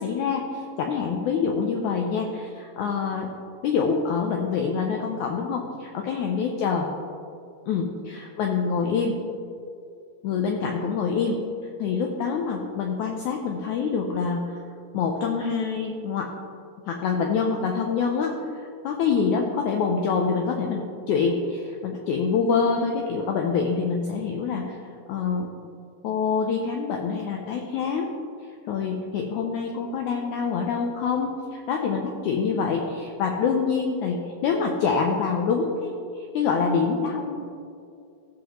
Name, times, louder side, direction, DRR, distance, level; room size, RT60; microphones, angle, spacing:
voice 1, 0.0-3.3 3.6-6.9 7.7-9.2 10.2-14.6 14.9-16.3 16.8-24.8 25.1-25.5 26.0-28.1 28.7-37.4, left 5 dB, 90° left, 1 dB, 1.7 m, -26 dB
16.0 x 7.2 x 3.0 m, 2.5 s
omnidirectional pair, 4.2 m